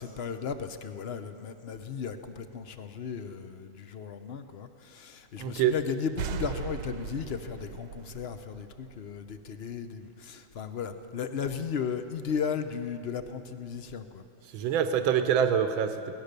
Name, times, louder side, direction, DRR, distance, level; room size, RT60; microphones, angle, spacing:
voice 1, 0.0-14.2, left 6 dB, 90° left, 9 dB, 0.5 m, -35 dB
voice 2, 5.4-5.7 14.5-16.2, right 8 dB, 85° right, 9 dB, 1.7 m, -25 dB
sound 1, 6.2-9.7, right 8 dB, 70° right, 1.3 m, -39 dB
23.5 x 18.0 x 6.7 m, 2.7 s
omnidirectional pair, 2.1 m